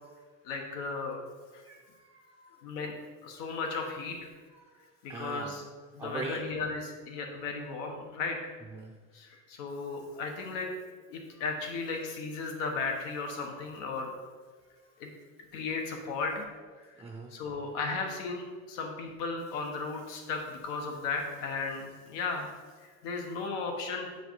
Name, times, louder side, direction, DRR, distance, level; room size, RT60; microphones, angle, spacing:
voice 1, 0.4-1.2 1.5-1.6 2.6-2.9 3.2-4.3 5.0-5.6 5.9-8.4 9.1-10.7 11.1-14.1 15.0-15.1 15.5-16.4 16.8-16.9 17.3-22.5 23.0-24.1, left 4 dB, 85° left, 2 dB, 1.5 m, -35 dB
voice 2, 1.6-2.6 4.5-4.8 5.1-5.5 6.0-6.4 8.7-8.9 17.0-17.3, right 3 dB, 5° right, 1 dB, 0.5 m, -41 dB
8.0 x 5.0 x 4.7 m, 1.5 s
cardioid pair, 150°, 37 cm